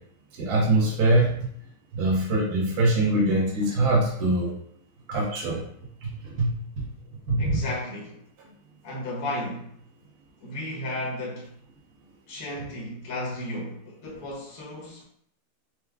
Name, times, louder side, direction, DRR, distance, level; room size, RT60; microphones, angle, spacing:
voice 1, 0.4-1.4 1.9-4.5 5.1-5.6 6.0-6.1 6.4-6.5 6.8-6.9 7.3-7.6, right 2 dB, 55° right, 1.3 m, -23 dB
voice 2, 7.4-8.2 8.8-9.7 10.4-11.5 12.3-15.0, left 1 dB, 50° left, 1.4 m, -34 dB
4.7 x 2.2 x 3.4 m
omnidirectional pair, 2.4 m